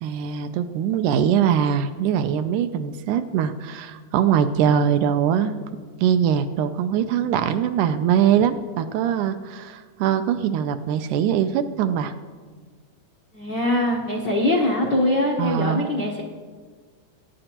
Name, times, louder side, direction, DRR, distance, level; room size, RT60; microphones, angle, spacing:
voice 1, 0.0-5.6 6.0-12.1 15.4-15.9, right 8 dB, 80° right, 9 dB, 2.0 m, -22 dB
voice 2, 13.3-16.2, left 1 dB, 70° left, -1 dB, 1.0 m, -22 dB
20.0 x 9.7 x 2.9 m, 1.5 s
omnidirectional pair, 3.7 m